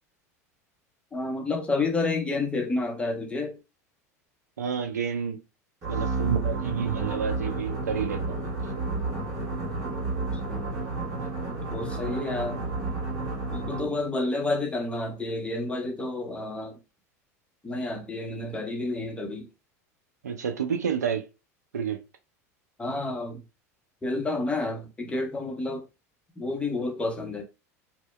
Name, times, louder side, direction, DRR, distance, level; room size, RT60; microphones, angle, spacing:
voice 1, 1.1-3.6 10.5-10.6 11.7-12.6 13.5-16.8 17.6-19.5 22.8-23.4 24.0-25.8 26.4-27.4, left 2 dB, 15° left, 0.7 m, -30 dB
voice 2, 4.6-5.4 5.9-8.4 20.2-21.3 21.7-22.0, right 7 dB, 90° right, 0.4 m, -29 dB
sound 1, 5.8-14.1, right 3 dB, 45° right, 1.3 m, -31 dB
2.7 x 2.1 x 2.2 m
hypercardioid pair, 90°, 9 cm